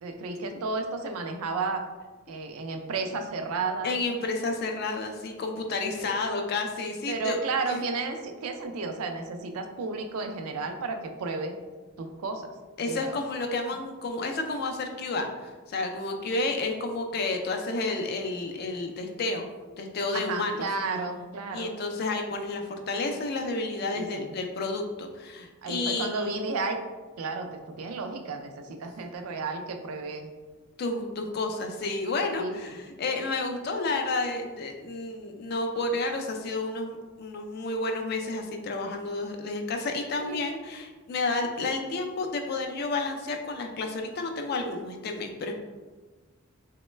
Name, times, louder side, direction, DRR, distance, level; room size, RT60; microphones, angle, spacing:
voice 1, 0.0-1.8 2.3-4.0 5.9-6.1 7.1-11.6 12.0-12.5 12.9-13.2 20.1-21.8 23.9-24.3 25.6-26.8 27.2-30.3 32.3-32.8 40.2-40.5, right 3 dB, 85° right, 5 dB, 0.4 m, -33 dB
voice 2, 3.8-7.4 7.7-7.8 12.8-19.5 19.8-20.7 21.5-26.4 30.8-45.6, left 3 dB, 45° left, 4 dB, 0.3 m, -31 dB
3.0 x 2.1 x 3.1 m, 1.3 s
head